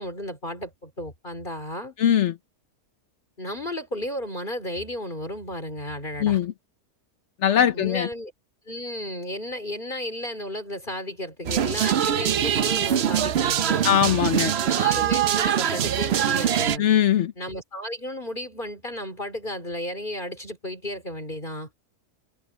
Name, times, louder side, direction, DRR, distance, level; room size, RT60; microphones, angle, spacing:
voice 1, 0.0-2.0 3.4-6.4 7.7-8.3 8.7-13.9 14.6-16.9 17.4-21.7, left 1 dB, 30° left, 3.8 m, -33 dB
voice 2, 2.0-2.3 6.2-6.5 7.4-8.1 13.8-14.5 16.8-17.3, left 10 dB, 60° left, 0.9 m, -20 dB
sound 1, 11.4-16.8, right 10 dB, 55° right, 0.7 m, -23 dB
omnidirectional pair, 1.7 m